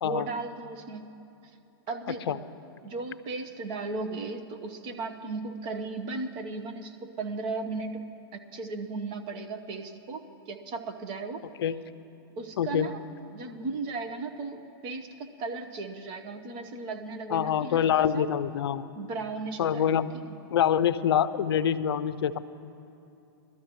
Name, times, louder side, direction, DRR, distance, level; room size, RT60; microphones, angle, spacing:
voice 1, 0.0-1.1 1.9-2.4 2.8-11.4 12.4-18.3 19.0-20.2, right 3 dB, 35° right, 6 dB, 1.1 m, -36 dB
voice 2, 12.6-12.9 17.3-18.9 19.6-20.1 20.5-22.4, left 9 dB, 70° left, 15 dB, 0.5 m, -25 dB
22.5 x 13.0 x 3.1 m, 2.8 s
hypercardioid pair, 130°, 13 cm